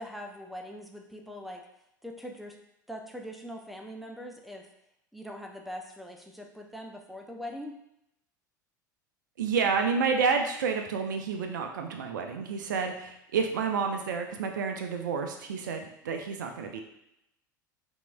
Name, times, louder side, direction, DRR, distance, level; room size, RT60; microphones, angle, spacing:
voice 1, 0.0-1.6 2.0-2.5 2.9-4.7 5.1-7.7, equal, ahead, 2 dB, 0.5 m, -42 dB
voice 2, 9.4-16.8, right 5 dB, 70° right, 4 dB, 0.5 m, -29 dB
5.8 x 2.7 x 2.3 m, 0.82 s
figure-of-eight pair, 80°, 11 cm